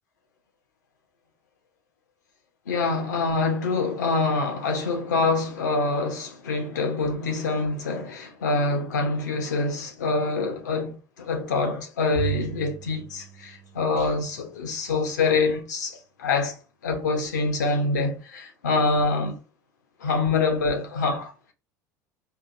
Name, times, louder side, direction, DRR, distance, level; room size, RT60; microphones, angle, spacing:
voice 1, 2.7-16.6 16.8-19.4 20.0-21.3, left 3 dB, 75° left, 1.0 m, -25 dB
Bowed string instrument, 12.1-14.5, right 11 dB, 35° right, 0.7 m, -36 dB
4.7 x 2.5 x 2.5 m
figure-of-eight pair, 70°, 9 cm